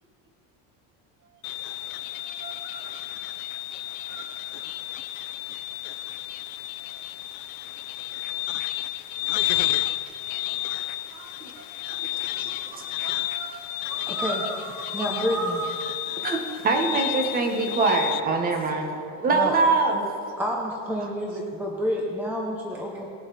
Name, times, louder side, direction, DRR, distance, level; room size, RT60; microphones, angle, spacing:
sound 1, 1.4-18.2, left 17 dB, 60° left, 0.6 m, -32 dB
voice 1, 1.9-5.0 6.9-7.0 8.3-8.7 9.4-11.8 12.4-12.5 12.9-16.4, right 3 dB, 40° right, 1.4 m, -39 dB
voice 2, 12.3-13.1 16.2-20.1 21.0-21.1, right 3 dB, 20° right, 1.2 m, -24 dB
voice 3, 14.1-14.4 14.9-15.6 19.3-19.7 20.4-23.1, equal, 5° right, 0.6 m, -29 dB
19.5 x 7.6 x 4.1 m
cardioid pair, 170°, 44 cm